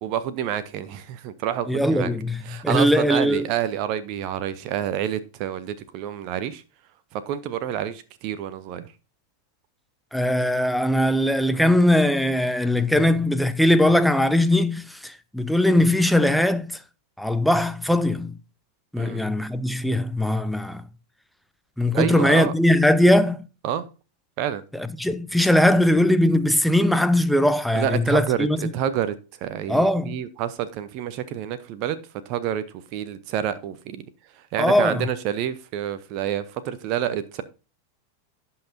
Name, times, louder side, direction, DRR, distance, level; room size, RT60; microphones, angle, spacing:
voice 1, 0.0-2.1 2.4-6.6 7.1-8.9 19.0-19.2 21.9-22.5 23.6-23.9 24.4-24.6 27.7-29.1 29.4-32.0 32.3-32.6 32.9-34.0 34.5-37.4, right 10 dB, 40° right, 0.7 m, -28 dB
voice 2, 1.7-3.5 10.1-16.8 17.2-18.4 18.9-20.8 21.8-23.4 24.7-28.6 29.7-30.2 34.6-35.1, left 1 dB, ahead, 0.7 m, -20 dB
17.0 x 5.7 x 2.7 m
figure-of-eight pair, 90°, 0 cm